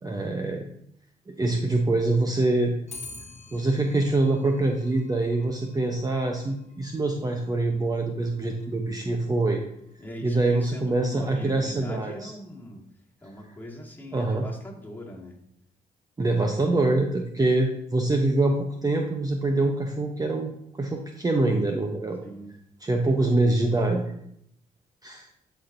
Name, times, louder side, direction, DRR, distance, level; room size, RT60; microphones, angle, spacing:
voice 1, 0.0-0.6 1.3-2.7 3.5-9.6 10.2-12.3 14.1-14.4 16.2-20.5 20.8-22.2 22.8-24.0 25.0-25.3, right 2 dB, 20° right, 2 dB, 0.8 m, -24 dB
Clock, 2.9-12.2, left 3 dB, 40° left, 1.3 m, -50 dB
voice 2, 10.0-12.8 13.2-15.4 22.2-22.5, equal, 10° left, -3 dB, 2.1 m, -40 dB
11.0 x 4.3 x 2.7 m, 0.73 s
supercardioid pair, 65°, 17 cm